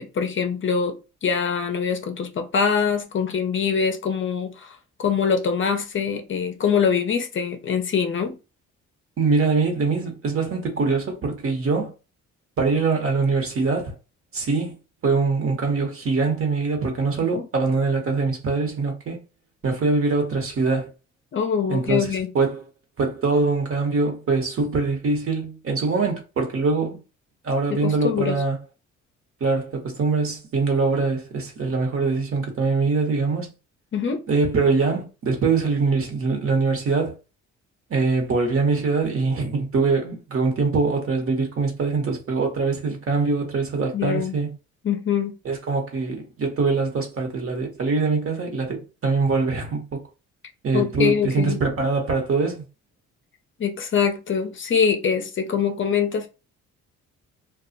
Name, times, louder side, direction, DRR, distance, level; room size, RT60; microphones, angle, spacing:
voice 1, 0.0-8.4 17.3-17.4 21.3-22.3 27.7-28.4 33.9-34.2 43.9-44.4 44.8-45.4 50.7-51.6 53.6-56.3, left 6 dB, 40° left, 0.5 m, -24 dB
voice 2, 9.2-11.9 12.6-13.9 14.3-14.7 15.0-19.2 19.6-20.9 21.7-22.1 22.3-22.6 23.0-27.0 27.4-28.6 29.4-33.5 34.3-37.2 37.9-44.5 45.4-50.0 50.6-52.6, right 4 dB, 45° right, 1.1 m, -23 dB
2.3 x 2.0 x 3.8 m
cardioid pair, 90°, 30 cm